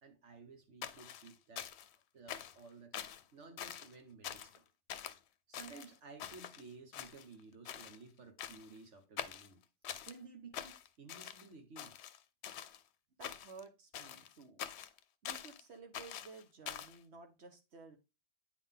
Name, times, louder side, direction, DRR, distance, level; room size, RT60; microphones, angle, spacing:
voice 1, 0.0-1.7 2.1-4.6 5.5-9.6 10.0-12.0, right 4 dB, 90° right, 1.6 m, -55 dB
sound 1, 0.8-2.0 2.3-2.6 2.9-3.2 3.6-3.9 4.2-4.6 4.9-5.2 5.5-6.6 6.9-7.4 7.7-8.0 8.4-8.8 9.2-10.2 10.5-11.5 11.8-12.8 13.2-13.6 13.9-15.6 15.9-17.0, left 10 dB, 70° left, 0.8 m, -45 dB
voice 2, 13.2-14.6 15.2-18.0, right 4 dB, 70° right, 1.4 m, -54 dB
8.9 x 3.9 x 3.6 m
omnidirectional pair, 1.2 m